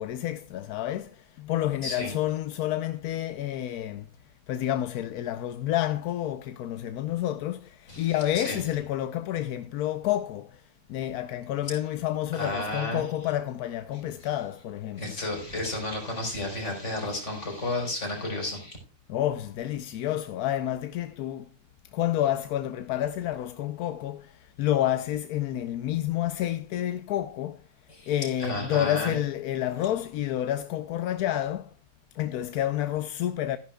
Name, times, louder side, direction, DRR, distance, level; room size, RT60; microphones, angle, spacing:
voice 1, 0.0-4.1 4.5-10.6 10.9-15.2 19.1-21.5 21.9-27.6 28.1-31.7 32.1-33.6, left 12 dB, 85° left, 1.1 m, -29 dB
voice 2, 1.8-2.2 7.9-8.6 11.6-11.7 12.3-13.1 13.9-14.0 15.0-18.8 27.9-28.1 28.4-29.2, left 2 dB, 50° left, 4.6 m, -32 dB
14.0 x 10.5 x 2.2 m
omnidirectional pair, 1.5 m